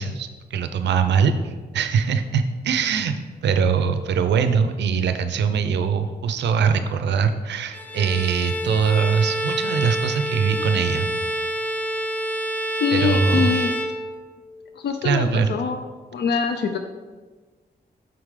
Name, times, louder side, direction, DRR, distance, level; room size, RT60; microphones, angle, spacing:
voice 1, 0.0-3.2 3.4-11.1 12.9-13.7 15.0-15.5, right 6 dB, 90° right, 8 dB, 0.4 m, -22 dB
Bowed string instrument, 7.7-14.5, equal, 10° left, 0.5 m, -27 dB
voice 2, 12.7-13.7 14.8-15.8 16.1-16.8, left 6 dB, 75° left, 6 dB, 0.4 m, -24 dB
5.8 x 4.8 x 3.6 m, 1.4 s
cardioid pair, 75°, 18 cm